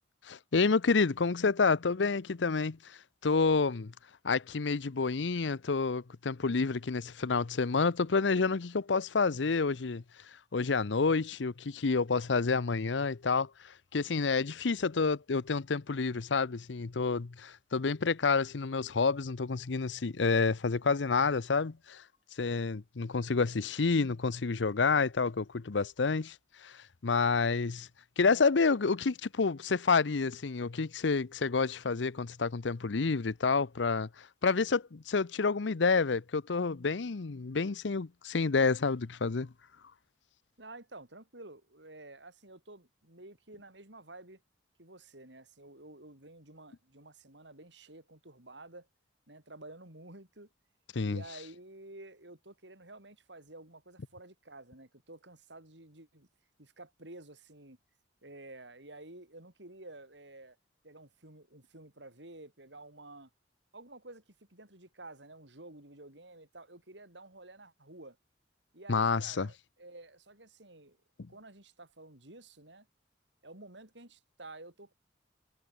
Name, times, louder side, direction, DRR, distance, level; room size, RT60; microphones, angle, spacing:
voice 1, 0.2-3.9 4.2-10.0 10.5-22.0 22.4-26.4 26.6-27.9 28.2-39.5 50.9-51.2 68.9-69.5 71.2-71.3, left 4 dB, 75° left, 0.7 m, -29 dB
voice 2, 40.6-44.4 44.8-48.9 49.3-50.5 51.0-56.3 56.6-57.8 58.2-60.6 60.8-63.3 63.7-64.2 64.5-68.2 68.7-71.0 71.3-72.9 73.4-74.9, right 2 dB, 70° right, 6.7 m, -51 dB
head